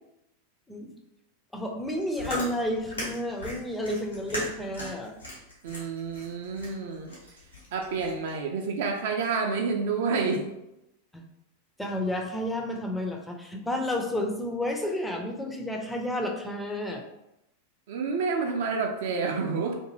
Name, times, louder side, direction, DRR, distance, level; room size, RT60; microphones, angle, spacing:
voice 1, 1.5-5.1 11.1-11.2 11.8-17.0, left 1 dB, 5° left, 2 dB, 0.4 m, -31 dB
Chewing mastication, 1.8-8.3, left 1 dB, 80° left, 1.1 m, -38 dB
voice 2, 5.6-7.1 7.7-10.4 17.9-19.8, right 4 dB, 55° right, 2 dB, 0.4 m, -29 dB
2.6 x 2.5 x 2.8 m, 0.87 s
figure-of-eight pair, 90°, 0 cm